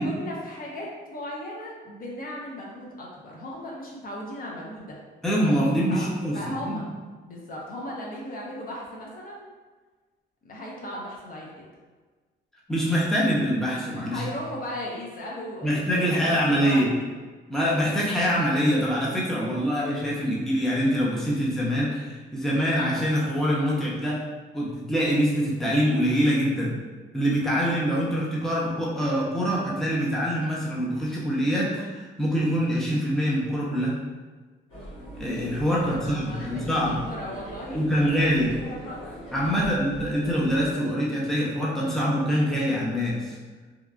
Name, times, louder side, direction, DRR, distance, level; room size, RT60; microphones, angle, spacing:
voice 1, 0.0-5.0 5.9-6.1 6.3-6.8 7.2-9.5 10.4-11.7 14.0-16.8 35.8-36.7 37.0-38.3 38.6-39.0 39.4-39.6, left 1 dB, 45° left, -3 dB, 0.7 m, -37 dB
voice 2, 5.2-6.4 6.6-6.7 12.7-14.2 15.6-16.9 17.5-24.2 24.5-26.7 27.1-34.0 35.2-37.0 37.7-38.5 39.3-43.4, equal, ahead, -6 dB, 0.6 m, -24 dB
sound 1, 34.7-40.7, right 1 dB, 80° left, 1.2 m, -41 dB
2.8 x 2.3 x 2.4 m, 1.4 s
cardioid pair, 90°, 20 cm